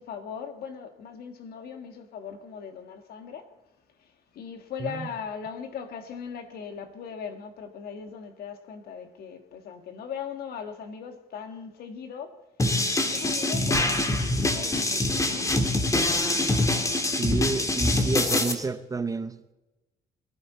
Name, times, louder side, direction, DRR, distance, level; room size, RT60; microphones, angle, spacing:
voice 1, 0.0-3.5 4.0-12.4 13.0-15.5, left 7 dB, 65° left, 1.8 m, -39 dB
sound 1, 12.6-18.5, left 2 dB, 20° left, 1.7 m, -24 dB
voice 2, 17.2-19.3, right 4 dB, 20° right, 0.7 m, -29 dB
21.5 x 11.5 x 4.1 m
cardioid pair, 110°, 17 cm